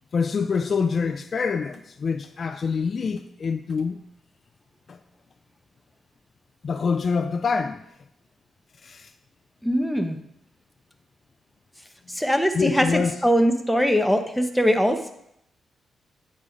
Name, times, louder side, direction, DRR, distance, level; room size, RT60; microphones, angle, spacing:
voice 1, 0.1-4.0 4.9-5.0 6.6-7.8 8.8-9.1 12.5-13.1, left 5 dB, 45° left, 0.3 m, -25 dB
voice 2, 9.6-10.2 12.1-15.1, equal, ahead, 0.6 m, -22 dB
8.5 x 4.1 x 5.0 m
cardioid pair, 130°, 0 cm